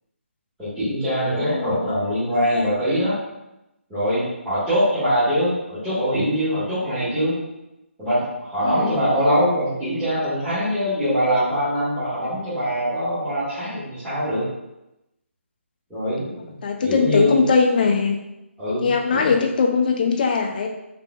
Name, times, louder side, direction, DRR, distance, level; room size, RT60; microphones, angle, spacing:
voice 1, 0.6-3.2 3.9-7.3 8.0-14.4 15.9-16.6 16.8-17.4 18.6-19.3, equal, 10° right, -16 dB, 1.3 m, -23 dB
voice 2, 1.2-1.8 2.3-2.7 8.6-9.2 16.6-18.2 18.8-20.7, left 5 dB, 40° left, 2 dB, 0.5 m, -21 dB
5.6 x 2.6 x 2.2 m, 0.92 s
figure-of-eight pair, 145°, 7 cm